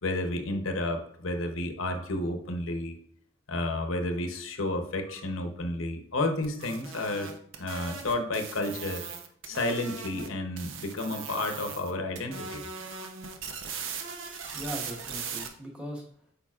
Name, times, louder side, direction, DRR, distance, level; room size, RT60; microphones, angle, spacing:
voice 1, 0.0-2.9 3.5-7.3 7.6-9.0 9.5-12.6, left 2 dB, 85° left, 5 dB, 0.9 m, -31 dB
sound 1, 2.0-2.1 3.5-3.7 5.1-5.2 6.6-6.7 8.1-8.3 9.7-9.8 11.2-11.3 12.9-13.1 14.4-14.6, left 1 dB, 35° right, 2.4 m, -53 dB
sound 2, 6.4-10.3 10.6-11.9 12.2-15.5, right 6 dB, 75° right, 0.8 m, -39 dB
voice 2, 14.5-16.3, equal, 5° right, -2 dB, 1.3 m, -39 dB
8.5 x 5.3 x 2.4 m, 0.65 s
head